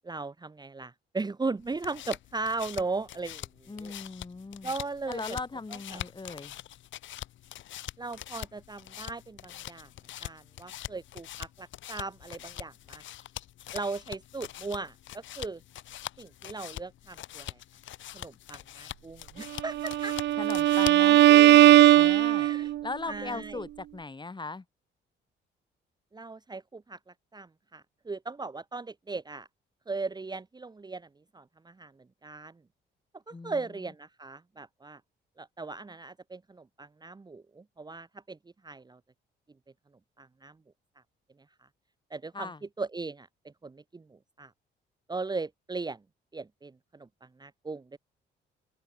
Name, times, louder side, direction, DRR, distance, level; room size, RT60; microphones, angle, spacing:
voice 1, 0.0-3.5 3.8-3.9 4.6-5.4 5.9-6.0 8.0-9.9 10.2-13.0 13.7-15.6 16.2-17.6 18.1-20.2 22.4-22.7 23.1-23.6 26.1-29.5 29.9-32.6 33.3-35.0 35.4-38.4 38.6-39.0 40.2-40.6 42.1-42.5 42.8-43.3 43.6-44.5 45.1-46.0 46.3-47.9, right 3 dB, 20° right, 1.2 m, -38 dB
sound 1, 1.6-21.2, left 13 dB, 70° left, 1.0 m, -43 dB
voice 2, 3.7-4.7 5.1-6.6 20.4-22.5 22.8-24.6 33.3-33.9 42.3-42.6, left 3 dB, 25° left, 3.8 m, -39 dB
Bowed string instrument, 19.7-22.8, right 14 dB, 60° right, 0.4 m, -19 dB
open air
cardioid pair, 90°, 20 cm